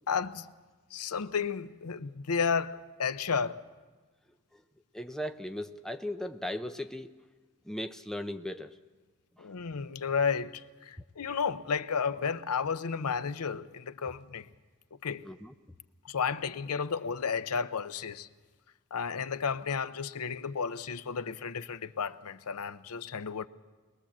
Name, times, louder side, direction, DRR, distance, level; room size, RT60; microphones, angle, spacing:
voice 1, 0.1-0.5 0.9-3.6 9.4-14.5 15.0-15.2 16.1-18.3 18.9-23.5, left 6 dB, 85° left, 0.7 m, -32 dB
voice 2, 4.9-7.1 7.6-8.7 9.4-9.5 15.2-15.5, left 1 dB, ahead, 0.6 m, -37 dB
21.5 x 20.5 x 7.3 m
head